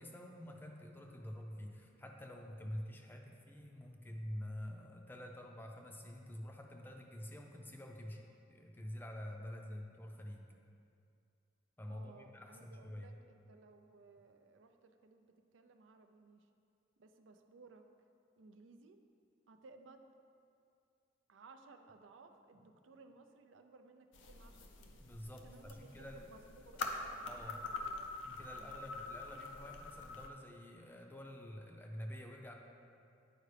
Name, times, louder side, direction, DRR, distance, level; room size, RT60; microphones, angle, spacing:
voice 1, 0.0-8.2 8.5-10.5 11.8-13.2 25.0-26.3 27.2-27.6 28.2-32.5, equal, 10° left, 2 dB, 0.5 m, -48 dB
voice 2, 9.5-9.9 11.9-16.5 17.0-17.9 18.4-19.0 19.5-20.1 21.3-25.0 25.4-28.1 28.5-28.9, right 3 dB, 85° right, 6 dB, 0.5 m, -60 dB
sound 1, 24.1-30.3, left 3 dB, 80° left, 0.6 m, -45 dB
9.6 x 4.5 x 3.3 m, 2.5 s
head